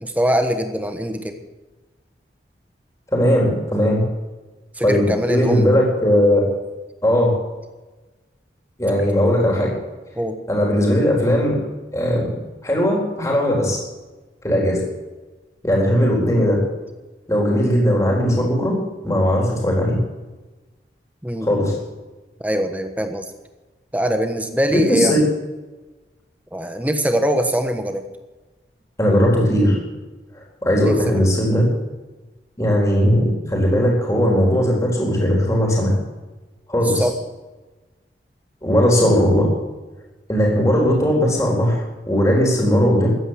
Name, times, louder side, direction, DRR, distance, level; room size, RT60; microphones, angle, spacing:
voice 1, 0.0-1.4 4.7-5.7 8.9-9.1 10.2-10.3 21.2-21.5 22.4-23.3 23.9-25.2 26.5-28.0 30.8-31.3 36.8-37.1, equal, 10° right, 6 dB, 1.2 m, -22 dB
voice 2, 3.1-4.0 4.8-6.4 7.0-7.3 8.8-9.7 10.5-11.5 11.9-12.3 12.6-13.8 14.4-14.8 15.6-16.6 17.3-18.7 19.0-20.0 21.4-21.8 24.7-25.2 29.0-29.8 30.6-31.6 32.6-35.9 36.7-37.1 38.6-39.4 40.3-43.1, equal, 15° left, -2 dB, 3.9 m, -18 dB
14.5 x 9.5 x 7.6 m, 1.2 s
head